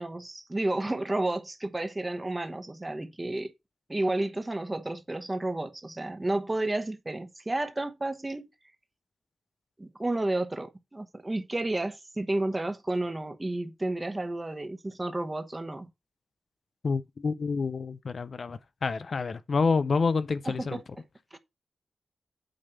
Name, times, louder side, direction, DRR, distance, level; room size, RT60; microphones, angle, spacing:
voice 1, 0.0-3.5 3.9-8.5 9.8-15.9 20.4-20.8 21.3-21.4, right 2 dB, 20° right, 1.2 m, -31 dB
voice 2, 16.8-20.8, left 4 dB, 55° left, 0.5 m, -28 dB
8.8 x 3.3 x 6.7 m
wide cardioid pair, 115°, 0 cm